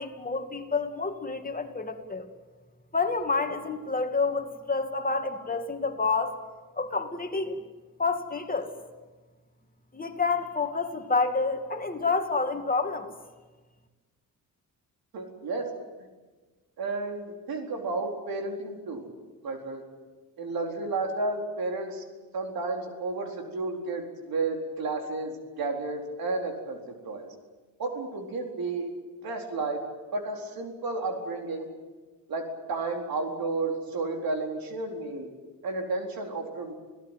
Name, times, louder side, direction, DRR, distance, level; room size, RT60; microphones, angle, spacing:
voice 1, 0.0-2.3 2.9-6.4 6.8-7.6 8.0-8.7 9.9-13.1, left 4 dB, 25° left, 5 dB, 2.4 m, -28 dB
voice 2, 15.1-15.7 16.0-16.1 16.8-19.1 19.4-19.8 20.4-22.0 22.3-27.3 27.8-28.9 29.2-29.8 30.1-31.7 32.3-35.3 35.6-36.7, right 3 dB, 85° right, 3 dB, 4.4 m, -32 dB
27.5 x 17.0 x 9.2 m, 1.3 s
cardioid pair, 110°, 35 cm